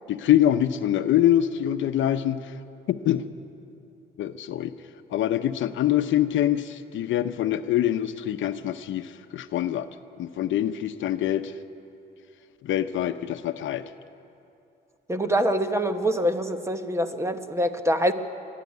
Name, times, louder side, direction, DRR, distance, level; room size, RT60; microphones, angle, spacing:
voice 1, 0.1-2.5 2.9-3.3 4.2-4.7 5.1-9.9 10.2-11.5 12.6-13.8, left 11 dB, 75° left, 10 dB, 0.8 m, -24 dB
voice 2, 15.1-18.1, equal, 15° right, 8 dB, 1.2 m, -25 dB
23.0 x 12.0 x 9.5 m, 2.7 s
cardioid pair, 90°, 20 cm